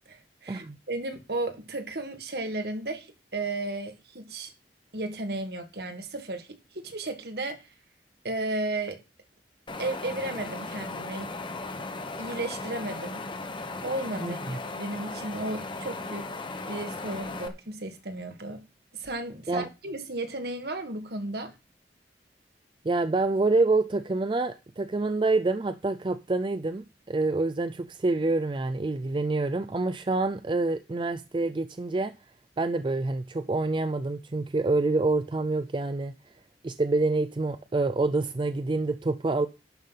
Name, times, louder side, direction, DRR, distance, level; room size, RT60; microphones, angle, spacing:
voice 1, 0.1-4.5 4.9-7.7 8.2-9.0 9.8-11.3 12.2-13.2 13.8-16.3 16.7-18.6 18.9-21.5, right 2 dB, 60° right, 1.6 m, -34 dB
Wind, 9.7-17.5, left 3 dB, 25° left, 1.0 m, -37 dB
voice 2, 14.2-14.6 19.5-19.7 22.8-32.2 32.6-36.1 36.6-39.5, right 3 dB, 25° right, 0.4 m, -27 dB
11.5 x 5.5 x 5.6 m
head